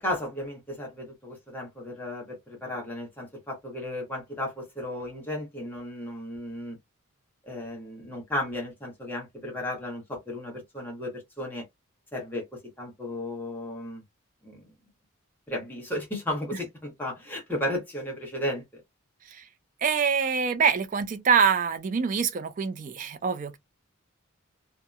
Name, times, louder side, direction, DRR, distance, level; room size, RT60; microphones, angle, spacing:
voice 1, 0.0-6.8 7.4-11.7 12.1-14.0 14.4-14.6 15.5-18.6, left 1 dB, 10° left, 1.0 m, -34 dB
voice 2, 19.8-23.6, right 6 dB, 40° right, 0.4 m, -25 dB
2.7 x 2.1 x 2.3 m
head